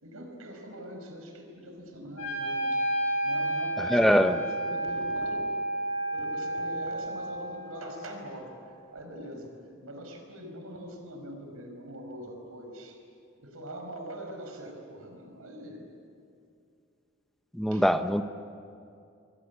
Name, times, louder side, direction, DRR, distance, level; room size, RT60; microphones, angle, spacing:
voice 1, 0.0-2.8 3.2-5.5 6.1-8.5 8.9-9.5 9.8-13.0 13.4-15.9 17.7-17.8, right 1 dB, 90° right, 4 dB, 5.5 m, -42 dB
Wind instrument woodwind instrument, 2.2-8.2, right 1 dB, 90° left, 7.5 m, -31 dB
voice 2, 3.8-4.4 17.6-18.2, equal, ahead, 9 dB, 0.8 m, -23 dB
28.0 x 23.0 x 8.5 m, 2.5 s
head